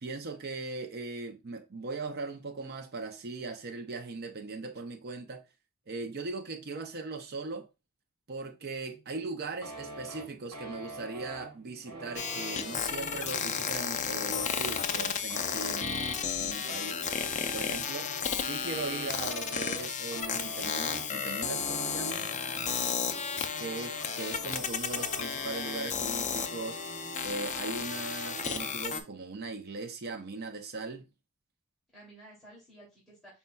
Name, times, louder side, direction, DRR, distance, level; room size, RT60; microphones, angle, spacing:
voice 1, 0.0-5.4 5.9-7.7 8.3-17.0 17.5-22.3 23.6-26.9 27.2-31.1, right 3 dB, 45° right, 0.6 m, -39 dB
sound 1, 9.6-28.8, equal, 75° right, 1.4 m, -44 dB
sound 2, 12.2-29.0, left 7 dB, 35° left, 0.4 m, -33 dB
voice 2, 22.8-23.7 31.9-33.4, right 1 dB, ahead, 2.8 m, -54 dB
5.4 x 4.2 x 2.3 m
head